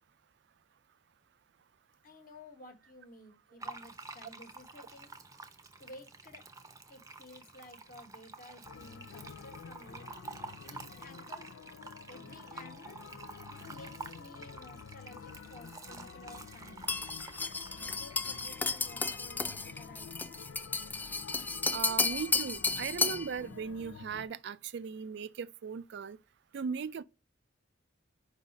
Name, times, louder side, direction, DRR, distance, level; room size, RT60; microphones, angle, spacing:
voice 1, 2.0-5.1 5.8-6.4 6.9-10.2 10.6-11.5 12.1-13.0 13.5-16.9 17.7-20.1, left 1 dB, 50° left, 1.3 m, -54 dB
Fill (with liquid), 3.6-18.8, right 3 dB, 15° right, 0.7 m, -49 dB
sound 1, 8.6-24.3, left 6 dB, 90° left, 0.4 m, -50 dB
sound 2, 16.9-23.3, left 3 dB, 10° left, 0.3 m, -33 dB
voice 2, 21.7-26.2 26.5-27.0, right 6 dB, 60° right, 0.4 m, -38 dB
4.9 x 3.9 x 5.3 m
head